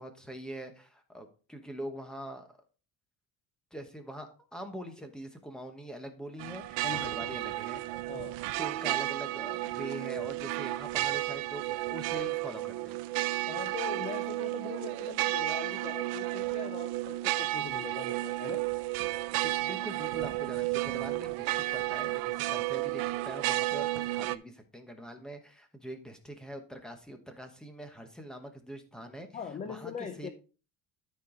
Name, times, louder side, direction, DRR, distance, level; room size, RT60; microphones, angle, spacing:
voice 1, 0.0-2.6 3.7-7.8 8.6-13.0 19.3-29.3 29.6-29.9 30.2-30.3, right 1 dB, ahead, 1.0 m, -43 dB
sound 1, 6.4-24.4, right 18 dB, 75° right, 0.6 m, -32 dB
voice 2, 13.5-18.6 29.3-30.3, left 7 dB, 20° left, 0.5 m, -41 dB
13.0 x 4.5 x 3.7 m
cardioid pair, 170°, 35 cm